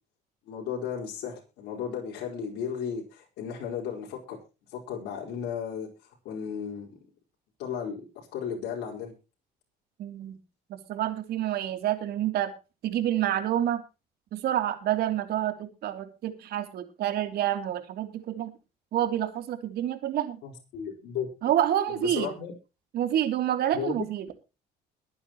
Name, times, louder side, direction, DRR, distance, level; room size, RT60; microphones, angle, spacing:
voice 1, 0.5-4.4 4.7-6.9 7.6-8.0 8.3-9.1 20.4-21.3 21.9-22.5 23.7-24.1, left 7 dB, 85° left, -1 dB, 4.6 m, -35 dB
voice 2, 10.0-10.4 10.7-12.5 12.8-13.8 14.3-18.5 18.9-20.4 21.4-22.3 22.9-24.3, right 11 dB, 70° right, 7 dB, 3.1 m, -28 dB
22.5 x 9.5 x 3.0 m, 0.31 s
cardioid pair, 110°, 17 cm